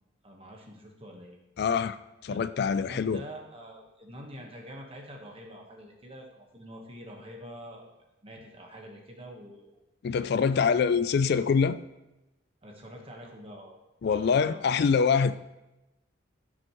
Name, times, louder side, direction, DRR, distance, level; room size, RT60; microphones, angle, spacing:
voice 1, 0.2-1.4 2.3-2.4 2.7-6.3 6.5-7.9 8.2-9.8 10.1-10.8 12.6-13.7 14.1-14.7, equal, 30° right, 0 dB, 1.2 m, -45 dB
voice 2, 1.6-2.0 2.2-3.2 10.0-11.8 14.0-15.4, left 6 dB, 55° left, 14 dB, 0.3 m, -24 dB
15.5 x 6.2 x 3.1 m, 0.96 s
head